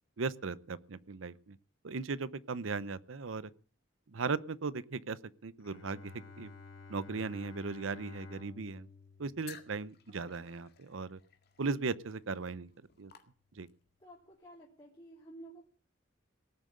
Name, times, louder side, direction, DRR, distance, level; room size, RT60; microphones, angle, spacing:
voice 1, 0.2-1.6 1.8-3.5 4.1-6.5 6.9-8.9 9.2-11.2 11.6-12.7 13.0-13.1 13.5-13.7, right 4 dB, 90° right, 18 dB, 0.7 m, -37 dB
Bowed string instrument, 5.6-11.3, left 4 dB, 75° left, 3.6 m, -53 dB
sound 1, 9.4-13.9, left 9 dB, 55° left, 2.0 m, -56 dB
voice 2, 14.0-15.6, right 1 dB, 25° left, -5 dB, 3.0 m, -52 dB
18.0 x 7.6 x 8.6 m, 0.44 s
head